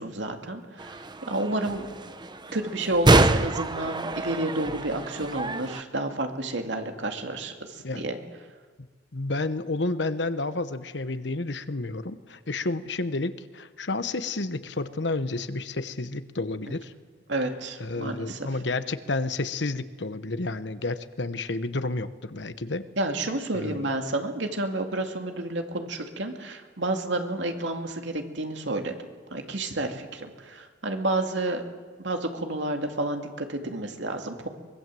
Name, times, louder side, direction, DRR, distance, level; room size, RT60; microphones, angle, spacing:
voice 1, 0.0-1.9 2.5-8.2 17.3-18.5 23.0-28.9 29.3-31.6 32.0-34.5, right 2 dB, 80° right, 4 dB, 2.5 m, -30 dB
sound 1, 0.8-5.8, right 2 dB, 25° right, 0.9 m, -26 dB
voice 2, 9.1-16.9 17.8-22.8 23.5-23.9, left 2 dB, 70° left, 12 dB, 1.1 m, -30 dB
23.5 x 22.0 x 7.7 m, 1.5 s
head